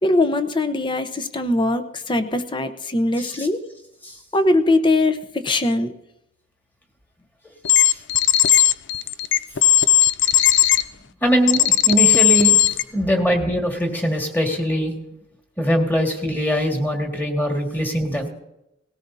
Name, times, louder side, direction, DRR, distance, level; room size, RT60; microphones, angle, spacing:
voice 1, 0.0-3.6 4.3-5.9, left 2 dB, 25° left, 8 dB, 0.8 m, -21 dB
sound 1, 7.6-10.8 11.5-12.8, left 11 dB, 65° left, 0.5 m, -16 dB
voice 2, 11.2-14.9 15.6-18.3, equal, 10° left, 2 dB, 1.9 m, -22 dB
19.0 x 17.0 x 2.8 m, 0.88 s
head